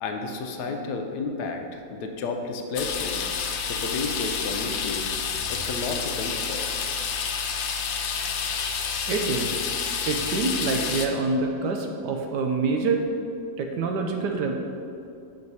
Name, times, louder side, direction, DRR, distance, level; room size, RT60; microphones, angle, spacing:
voice 1, 0.0-3.2 3.7-5.2 5.5-6.7, left 3 dB, 70° left, 4 dB, 1.2 m, -32 dB
sound 1, 2.8-11.1, left 6 dB, 90° left, 1.4 m, -29 dB
voice 2, 9.1-9.7 10.1-13.0 13.6-14.5, right 3 dB, 75° right, 3 dB, 1.1 m, -26 dB
6.1 x 5.2 x 5.4 m, 2.6 s
omnidirectional pair, 2.0 m